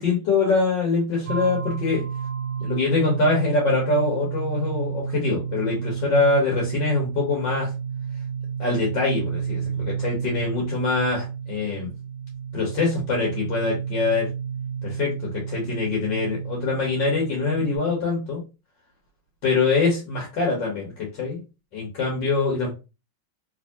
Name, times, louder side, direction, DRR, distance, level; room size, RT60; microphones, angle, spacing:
voice 1, 0.0-2.0 2.6-7.7 8.6-11.9 12.5-14.3 14.8-18.4 19.4-21.4 21.7-22.7, left 3 dB, 65° left, -2 dB, 1.9 m, -24 dB
sound 1, 1.3-17.8, right 7 dB, 75° right, 1.2 m, -31 dB
3.6 x 3.5 x 2.7 m, 0.29 s
omnidirectional pair, 2.2 m